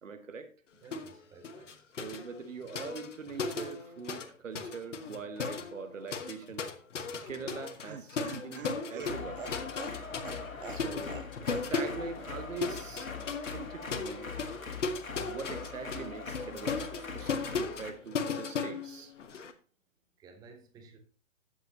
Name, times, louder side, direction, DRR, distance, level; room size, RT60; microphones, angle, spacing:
voice 1, 0.0-0.5 2.0-6.7 7.3-9.4 10.7-13.1 13.5-14.3 15.3-19.1, right 5 dB, 70° right, 1.4 m, -43 dB
voice 2, 0.8-1.8 10.8-11.1 20.2-21.0, right 4 dB, 10° right, 0.8 m, -54 dB
sound 1, 0.9-1.2 1.4-4.3 4.5-19.5, left 5 dB, 65° left, 1.3 m, -37 dB
Laughter, 7.3-11.3 11.5-11.7 12.0-12.1, right 10 dB, 45° right, 0.5 m, -45 dB
sound 2, 9.0-17.9, left 4 dB, 80° left, 1.9 m, -42 dB
12.5 x 8.3 x 2.9 m
figure-of-eight pair, 125°, 40 cm